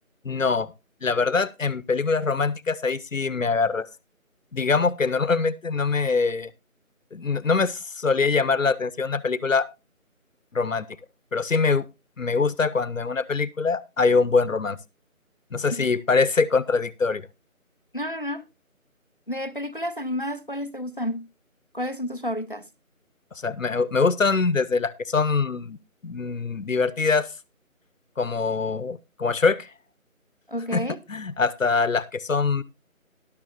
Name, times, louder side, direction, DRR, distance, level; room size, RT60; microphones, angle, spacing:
voice 1, 0.2-0.7 1.0-3.9 4.5-6.5 7.1-9.7 10.5-10.9 11.3-11.9 12.2-14.8 15.5-17.2 23.4-25.8 26.0-27.3 28.2-29.7 30.7-30.8 31.1-32.6, left 4 dB, 65° left, 0.9 m, -23 dB
voice 2, 17.9-18.4 19.3-21.3 21.7-22.6 30.5-31.0, equal, 40° left, 0.6 m, -30 dB
13.0 x 11.5 x 2.6 m
figure-of-eight pair, 175°, 42 cm